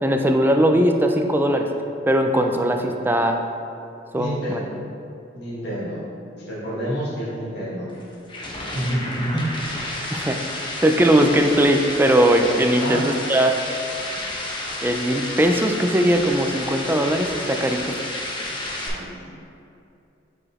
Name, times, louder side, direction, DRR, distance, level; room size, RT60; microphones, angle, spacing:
voice 1, 0.0-1.7 2.1-3.4 4.1-4.4 10.1-10.4 10.8-13.6 14.8-18.0, right 1 dB, 10° right, 4 dB, 0.3 m, -19 dB
voice 2, 4.1-4.7 5.3-6.0 6.4-7.9 8.7-9.5 12.8-13.0 18.8-19.3, right 1 dB, 60° left, -8 dB, 1.5 m, -28 dB
sound 1, 7.9-18.9, left 1 dB, 25° left, 0.8 m, -31 dB
4.9 x 4.7 x 4.2 m, 2.6 s
head